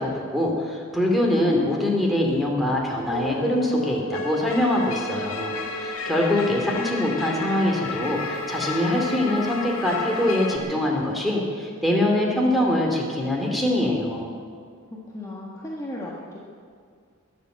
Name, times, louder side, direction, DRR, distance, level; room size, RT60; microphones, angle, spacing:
voice 1, 0.0-14.3, left 1 dB, ahead, -1 dB, 2.6 m, -23 dB
sound 1, 3.1-10.6, left 2 dB, 75° left, 1.9 m, -32 dB
voice 2, 15.1-16.4, left 1 dB, 15° left, -5 dB, 1.6 m, -35 dB
21.5 x 7.9 x 7.9 m, 2.2 s
head